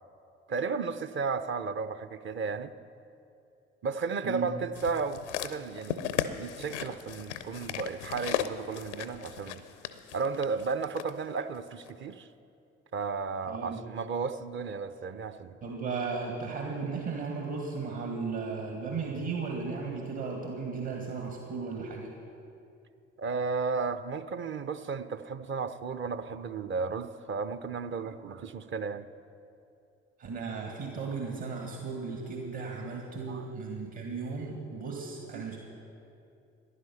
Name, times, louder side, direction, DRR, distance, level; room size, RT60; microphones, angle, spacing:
voice 1, 0.5-2.7 3.8-6.0 6.4-9.6 10.1-12.3 12.9-15.6 23.2-29.1 33.3-33.5 34.4-34.5 35.3-35.5, right 5 dB, 35° right, 11 dB, 0.7 m, -34 dB
sound 1, 4.8-11.1 11.9-12.0, left 10 dB, 80° left, 0.6 m, -36 dB
voice 2, 13.5-13.8 15.6-22.1 30.2-35.6, right 4 dB, 50° right, 0 dB, 2.0 m, -35 dB
14.5 x 11.0 x 5.7 m, 2.6 s
figure-of-eight pair, 50°, 35 cm